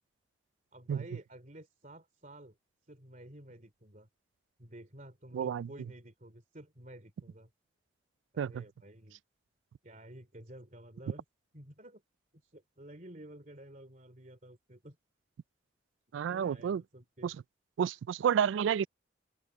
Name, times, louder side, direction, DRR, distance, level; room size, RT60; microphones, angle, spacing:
voice 1, 0.7-2.6 2.9-4.1 4.6-7.5 8.3-9.2 9.8-11.2 11.5-12.0 12.4-15.0 16.2-17.4, right 1 dB, 40° right, 3.2 m, -51 dB
voice 2, 5.3-5.7 8.4-8.6 16.1-16.8 17.2-17.3 17.8-18.9, right 8 dB, 80° right, 0.3 m, -30 dB
open air
head